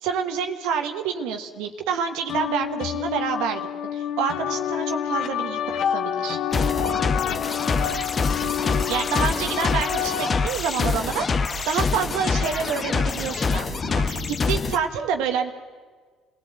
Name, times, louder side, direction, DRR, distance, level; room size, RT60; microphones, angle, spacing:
voice 1, 0.0-5.6 5.9-6.4 8.9-14.2 14.5-15.5, right 7 dB, 70° right, 5 dB, 1.5 m, -28 dB
sound 1, 2.3-10.3, left 9 dB, 60° left, 1.4 m, -28 dB
sound 2, 6.5-14.8, left 4 dB, 40° left, 1.3 m, -25 dB
29.0 x 17.5 x 8.2 m, 1.5 s
hypercardioid pair, 55°, 0 cm